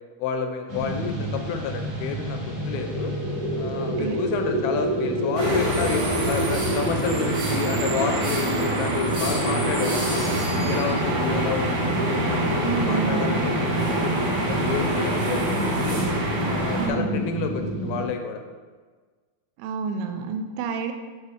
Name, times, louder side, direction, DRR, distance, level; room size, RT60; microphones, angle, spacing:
voice 1, 0.2-3.1 3.5-16.0 16.4-18.4, left 6 dB, 80° left, 6 dB, 2.3 m, -30 dB
sound 1, 0.7-18.0, right 1 dB, 40° right, 1.2 m, -28 dB
voice 2, 3.8-4.2 12.6-13.5 16.8-17.2 19.6-20.9, right 4 dB, 90° right, 6 dB, 2.6 m, -29 dB
sound 2, 5.3-16.9, right 1 dB, 65° right, 1.1 m, -27 dB
7.5 x 4.2 x 5.0 m, 1.4 s
omnidirectional pair, 4.5 m